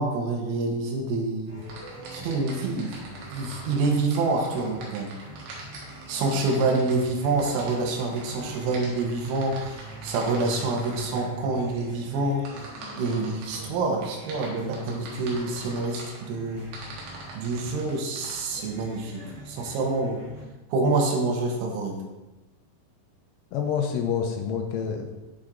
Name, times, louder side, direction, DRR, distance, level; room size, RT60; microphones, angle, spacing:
voice 1, 0.0-1.6 2.1-3.0 3.3-5.1 6.1-12.4 13.0-16.7 17.4-20.2 20.7-22.0, right 3 dB, 85° right, 0 dB, 3.6 m, -27 dB
sound 1, 1.5-20.4, right 1 dB, 55° right, 2.3 m, -45 dB
sound 2, 1.6-11.2 12.5-13.6 14.0-16.2 16.7-18.4, right 3 dB, 70° right, 3.5 m, -43 dB
voice 2, 23.5-25.1, left 7 dB, 80° left, 3 dB, 2.9 m, -27 dB
10.0 x 4.7 x 2.5 m, 1.1 s
omnidirectional pair, 5.9 m